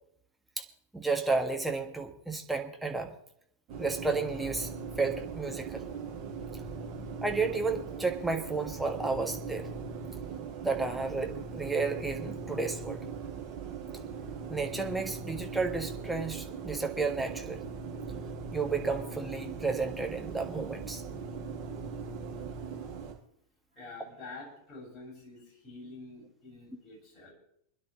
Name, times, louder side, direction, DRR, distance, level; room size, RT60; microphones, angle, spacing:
voice 1, 0.9-3.1 3.8-4.7 5.0-5.8 7.2-9.7 10.6-13.0 14.5-17.6 18.5-21.0, right 4 dB, 5° right, 2 dB, 1.6 m, -32 dB
sound 1, 3.7-23.1, right 5 dB, 40° right, 6.1 m, -40 dB
voice 2, 23.7-27.3, left 3 dB, 30° left, -2 dB, 6.8 m, -47 dB
28.5 x 10.5 x 3.1 m, 0.72 s
figure-of-eight pair, 90°, 0 cm